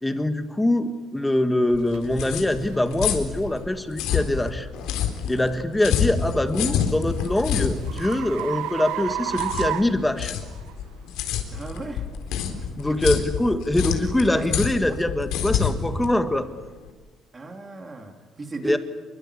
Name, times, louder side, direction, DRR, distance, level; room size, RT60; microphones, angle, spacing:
voice 1, 0.0-4.7 5.3-10.3 12.8-16.7 18.6-18.8, left 1 dB, 5° left, 8 dB, 1.7 m, -23 dB
sound 1, 1.7-16.9, left 8 dB, 85° left, 4.1 m, -28 dB
sound 2, 1.9-2.0 2.6-2.8 3.4-3.6 6.2-10.7, right 12 dB, 90° right, 1.6 m, -32 dB
voice 2, 11.5-12.1 12.9-13.1 13.8-14.7 17.3-18.8, right 3 dB, 20° right, 4 dB, 3.3 m, -36 dB
28.0 x 23.0 x 8.4 m, 1.2 s
cardioid pair, 165°, 0 cm